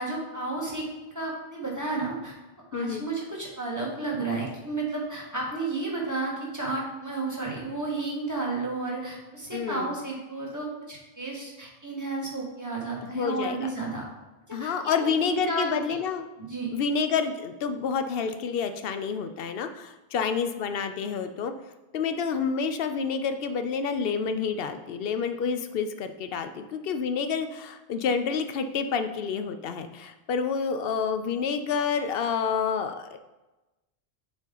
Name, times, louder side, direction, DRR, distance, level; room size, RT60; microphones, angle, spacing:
voice 1, 0.0-2.3 2.7-14.0 14.5-14.7 15.2-15.8 16.4-16.7, right 3 dB, 15° right, -4 dB, 1.3 m, -32 dB
voice 2, 2.7-3.1 9.5-9.9 13.0-13.7 14.5-16.3 16.7-21.5 21.9-33.2, left 6 dB, 65° left, 8 dB, 0.7 m, -29 dB
7.1 x 4.3 x 3.8 m, 1.1 s
omnidirectional pair, 1.1 m